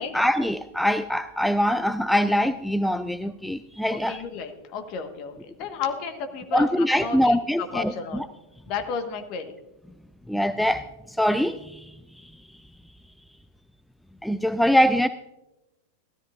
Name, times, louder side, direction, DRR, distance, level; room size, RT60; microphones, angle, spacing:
voice 1, 0.0-4.2 6.5-8.3 10.3-12.3 14.2-15.1, equal, ahead, 12 dB, 0.3 m, -23 dB
voice 2, 3.9-7.4 7.7-8.2 8.7-9.5, left 5 dB, 40° left, 7 dB, 1.4 m, -32 dB
17.0 x 13.0 x 2.5 m, 0.97 s
figure-of-eight pair, 90°, 0 cm